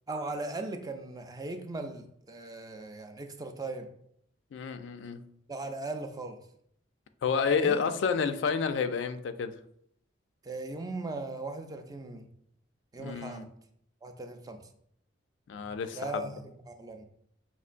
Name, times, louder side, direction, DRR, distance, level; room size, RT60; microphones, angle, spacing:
voice 1, 0.1-3.9 5.5-6.4 7.6-7.8 10.4-12.3 12.9-13.5 14.0-14.6 15.9-17.0, right 2 dB, 20° right, 5 dB, 0.3 m, -38 dB
voice 2, 4.5-5.2 7.2-9.5 13.0-13.5 15.5-16.2, left 6 dB, 70° left, 10 dB, 0.3 m, -30 dB
5.4 x 3.0 x 2.5 m, 0.69 s
head